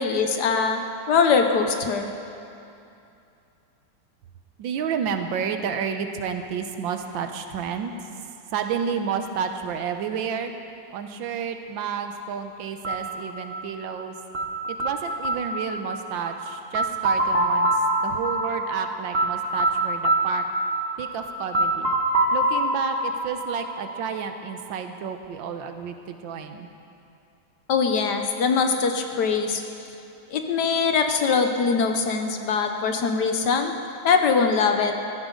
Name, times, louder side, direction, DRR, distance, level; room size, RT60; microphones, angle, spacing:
voice 1, 0.0-2.1 27.7-29.6 30.3-33.7 34.0-34.9, left 5 dB, 65° left, 5 dB, 1.3 m, -22 dB
voice 2, 4.6-7.9 8.5-10.5 10.9-14.1 14.7-17.7 18.0-20.4 21.0-21.9 22.3-26.7, right 7 dB, 80° right, 7 dB, 1.5 m, -30 dB
sound 1, 12.8-24.6, right 1 dB, 45° right, 0.8 m, -26 dB
15.5 x 14.5 x 3.8 m, 2.7 s
omnidirectional pair, 2.1 m